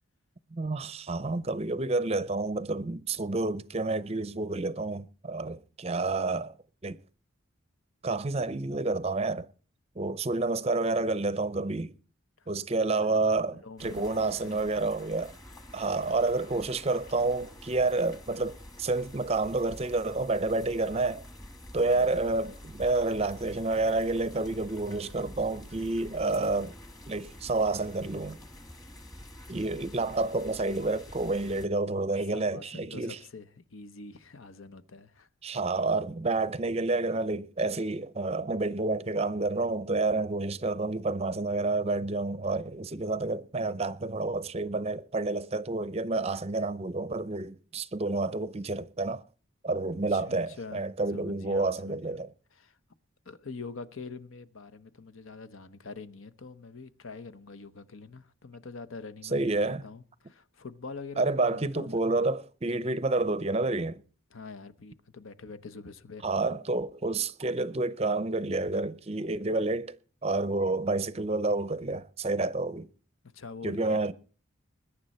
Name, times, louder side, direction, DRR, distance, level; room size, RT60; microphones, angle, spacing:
voice 1, 0.5-6.6 6.8-7.0 8.0-9.5 10.0-11.9 12.5-15.3 15.7-21.2 21.7-26.7 27.1-28.4 29.5-33.2 35.4-49.2 49.6-52.3 59.3-59.8 61.2-64.0 66.2-70.0 70.2-72.9 73.6-74.1, right 3 dB, 30° right, 0.6 m, -29 dB
voice 2, 13.5-14.6 21.9-22.1 32.3-35.3 50.1-50.8 51.1-52.2 52.5-52.8 53.2-62.3 64.3-66.2 73.3-74.1, left 4 dB, 75° left, 0.9 m, -45 dB
sound 1, 13.8-31.7, left 1 dB, 20° left, 1.5 m, -48 dB
21.0 x 9.8 x 4.3 m
head